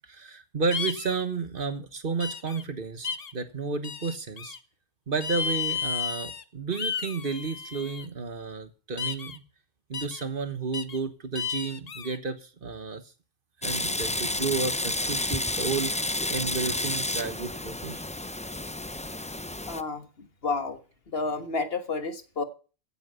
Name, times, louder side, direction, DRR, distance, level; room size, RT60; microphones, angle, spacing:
voice 1, 0.1-4.6 5.1-9.4 9.9-13.0 13.6-16.0 16.3-18.0, right 4 dB, 55° right, 10 dB, 1.5 m, -32 dB
sound 1, 0.7-1.2 2.2-2.6 3.0-3.3 3.8-4.6 5.2-6.4 6.7-8.0 9.0-9.4 9.9-10.2 10.7-11.0 11.3-12.2, left 6 dB, 40° left, 0.8 m, -33 dB
sound 2, 13.6-19.8, left 1 dB, 10° left, 0.3 m, -30 dB
voice 2, 19.7-20.8 21.1-22.4, left 3 dB, 65° left, 9 dB, 1.6 m, -31 dB
16.0 x 8.9 x 5.6 m, 0.37 s
omnidirectional pair, 1.1 m